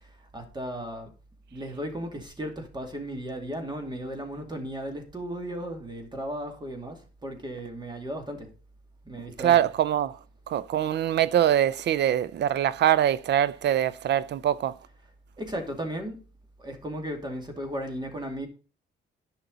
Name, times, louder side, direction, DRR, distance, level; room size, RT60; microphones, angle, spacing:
voice 1, 0.3-1.1 1.5-8.5 9.1-9.7 15.4-16.2 16.6-18.5, equal, 20° right, 2.4 m, -35 dB
voice 2, 9.4-10.2 10.5-14.8, right 11 dB, 60° right, 0.5 m, -23 dB
10.5 x 5.9 x 3.9 m
cardioid pair, 90°, 20 cm